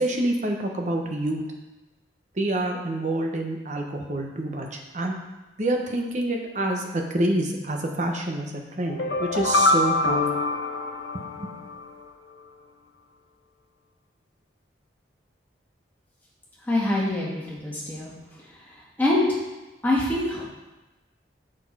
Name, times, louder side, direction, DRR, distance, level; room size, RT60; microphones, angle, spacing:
voice 1, 0.0-1.4 2.3-5.1 5.6-10.3 11.1-11.6, right 1 dB, 40° right, 2 dB, 1.0 m, -27 dB
sound 1, 8.9-11.9, left 2 dB, 80° left, 0.8 m, -25 dB
voice 2, 16.7-18.1 19.0-19.3 19.8-20.4, left 1 dB, 10° left, -6 dB, 2.0 m, -24 dB
6.9 x 6.1 x 4.8 m, 1.1 s
head